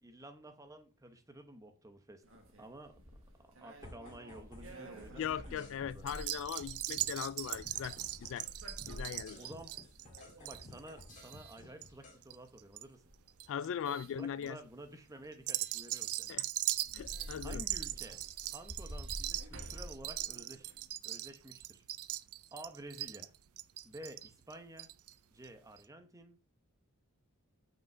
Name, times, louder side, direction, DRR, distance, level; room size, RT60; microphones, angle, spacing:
voice 1, 0.0-2.2 2.6-3.0 3.6-6.1 9.4-9.7 10.4-13.0 13.9-16.3 17.4-18.2 18.5-20.7 21.0-21.8 22.5-23.3 23.8-24.9 25.3-26.6, right 1 dB, 15° right, 0.9 m, -51 dB
sound 1, 2.2-12.3 12.9-14.1 15.5-15.8 16.3-16.4 16.7-20.9, equal, 60° right, 1.6 m, -50 dB
sound 2, 3.8-4.7 5.0-8.5 8.8-12.2 17.0-17.3 17.9-18.5 18.8-19.5, left 2 dB, 35° left, 2.1 m, -55 dB
voice 2, 5.2-8.5 8.9-9.4 13.5-14.6 16.3-16.4 16.9-17.6, left 8 dB, 60° left, 0.3 m, -39 dB
jingling braids, 6.1-12.8 13.1-13.7 14.2-14.5 15.3-25.1 25.4-25.5 25.8-25.9, right 15 dB, 85° right, 0.4 m, -40 dB
6.1 x 5.2 x 4.5 m
head